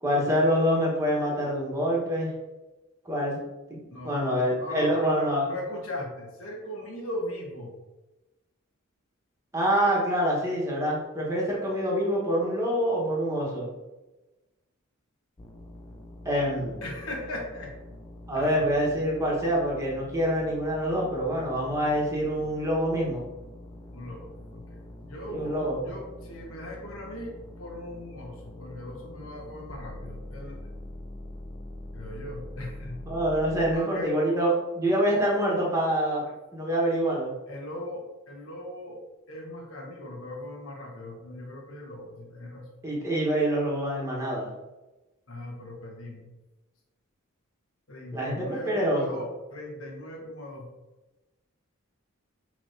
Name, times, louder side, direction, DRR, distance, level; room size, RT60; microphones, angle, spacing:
voice 1, 0.0-2.3 3.0-3.4 3.7-5.4 9.5-13.7 16.2-16.8 18.3-23.2 25.3-25.9 33.1-36.2 36.5-37.3 42.8-44.5 48.1-49.0, equal, 15° right, -4 dB, 1.1 m, -26 dB
voice 2, 3.9-7.8 16.8-17.7 18.3-18.7 20.9-21.5 23.9-30.6 31.9-33.0 33.7-34.2 37.5-42.7 45.3-46.3 47.9-50.7, left 1 dB, 70° left, 0 dB, 1.1 m, -39 dB
sound 1, 15.4-33.7, left 1 dB, 20° left, 0.4 m, -44 dB
5.8 x 3.0 x 2.6 m, 1.1 s
head